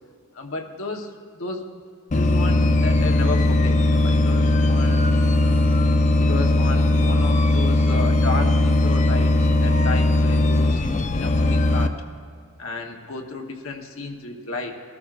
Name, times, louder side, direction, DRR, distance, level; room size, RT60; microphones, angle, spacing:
voice 1, 0.3-1.7 2.1-5.2 6.1-12.0 12.6-14.8, left 3 dB, 65° left, 2 dB, 1.1 m, -33 dB
sound 1, 2.1-11.9, left 2 dB, 35° left, 0.5 m, -19 dB
19.5 x 13.5 x 2.5 m, 2.1 s
head